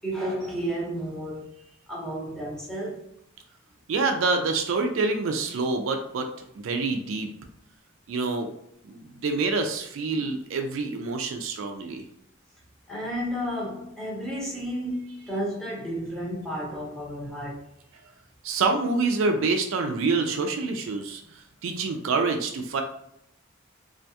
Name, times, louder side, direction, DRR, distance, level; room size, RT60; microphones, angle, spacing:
voice 1, 0.0-1.6 1.9-3.0 12.9-17.6, equal, 5° left, 0.9 m, -32 dB
voice 2, 3.9-6.3 6.6-7.3 8.1-8.5 8.8-12.0 18.4-22.8, right 3 dB, 70° right, 0.3 m, -26 dB
2.4 x 2.2 x 2.7 m
head